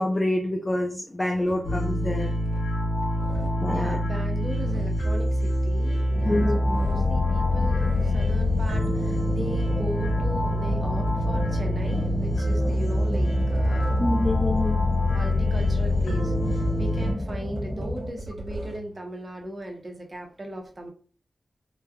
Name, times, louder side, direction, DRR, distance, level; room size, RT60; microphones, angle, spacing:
voice 1, 0.0-2.3 3.6-4.0 6.2-6.8 14.0-14.8, left 1 dB, 25° left, 2 dB, 0.3 m, -26 dB
sound 1, 1.3-1.8 2.2-2.8 3.1-3.7 4.2-6.3 6.6-7.2 7.7-8.2 8.9-14.3 15.3-19.0, right 2 dB, 75° right, 1.1 m, -40 dB
sound 2, 1.6-17.1, left 1 dB, 90° left, 0.8 m, -25 dB
voice 2, 3.7-14.0 15.0-20.9, right 1 dB, 40° right, 2 dB, 0.7 m, -37 dB
sound 3, 6.1-18.1, left 1 dB, 5° left, 0.7 m, -31 dB
3.1 x 2.1 x 2.3 m, 0.41 s
wide cardioid pair, 80°, 0 cm